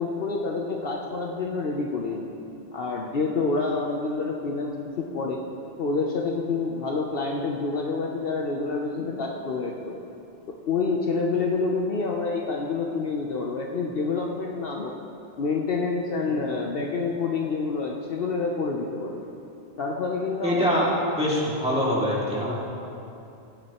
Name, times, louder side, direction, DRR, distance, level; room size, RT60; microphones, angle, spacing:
voice 1, 0.0-2.3 2.7-5.5 5.8-10.0 10.7-14.9 15.4-19.3 19.8-20.9, left 4 dB, 60° left, 0 dB, 0.9 m, -28 dB
voice 2, 20.4-20.9 21.2-22.5, equal, 5° right, -7 dB, 2.2 m, -24 dB
16.0 x 9.5 x 3.0 m, 2.7 s
omnidirectional pair, 1.1 m